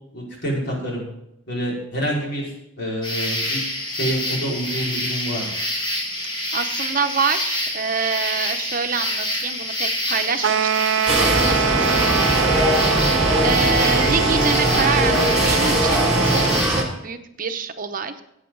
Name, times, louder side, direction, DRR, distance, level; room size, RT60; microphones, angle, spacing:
voice 1, 0.1-1.1 1.5-3.6 3.9-5.5, equal, 60° left, -4 dB, 5.1 m, -27 dB
sound 1, 3.0-16.8, left 1 dB, 25° left, 1.9 m, -27 dB
voice 2, 6.5-12.5 12.8-18.2, right 5 dB, 45° right, 7 dB, 0.9 m, -27 dB
sound 2, 10.4-16.6, right 9 dB, 70° right, 0.3 m, -23 dB
sound 3, 11.1-16.8, equal, 5° right, 3.1 m, -21 dB
15.5 x 8.8 x 3.9 m, 0.82 s
head